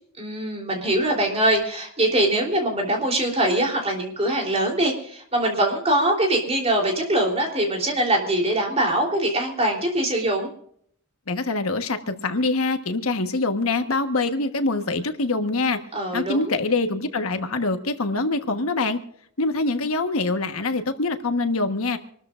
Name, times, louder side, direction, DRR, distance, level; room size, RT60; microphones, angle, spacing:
voice 1, 0.2-10.5 15.9-16.5, right 1 dB, 30° right, 1 dB, 3.4 m, -23 dB
voice 2, 11.3-15.8 16.1-19.0 19.4-22.0, left 3 dB, 70° left, 7 dB, 1.3 m, -24 dB
26.5 x 13.5 x 2.5 m, 0.64 s
head